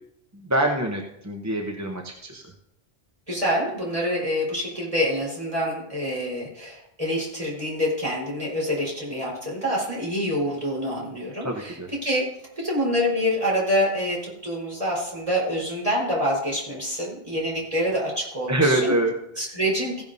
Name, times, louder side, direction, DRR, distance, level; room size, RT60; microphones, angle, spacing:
voice 1, 0.3-2.5 11.4-11.9 18.5-19.4, right 1 dB, 20° right, 1 dB, 0.8 m, -25 dB
voice 2, 3.3-12.3 12.6-18.9 19.4-20.0, equal, 35° right, -4 dB, 4.6 m, -26 dB
16.0 x 10.5 x 2.7 m, 0.78 s
omnidirectional pair, 1.0 m